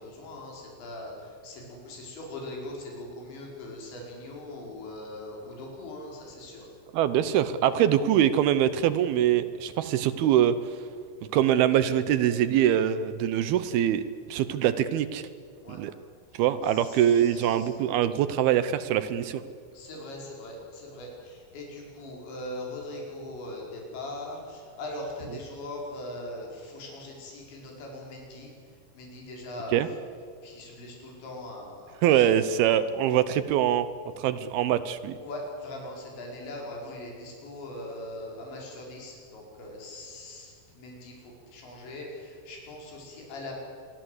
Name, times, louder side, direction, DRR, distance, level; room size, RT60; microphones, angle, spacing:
voice 1, 0.0-6.7 15.6-15.8 16.3-17.7 19.7-30.0 30.4-32.8 35.2-43.5, left 1 dB, 70° left, -1 dB, 7.5 m, -41 dB
voice 2, 6.9-10.6 11.3-14.0 14.3-15.2 15.7-15.9 16.4-19.4 29.7-29.9 32.0-33.9 34.2-35.2, right 10 dB, 80° right, 13 dB, 2.3 m, -23 dB
26.0 x 23.0 x 8.0 m, 2.2 s
omnidirectional pair, 5.3 m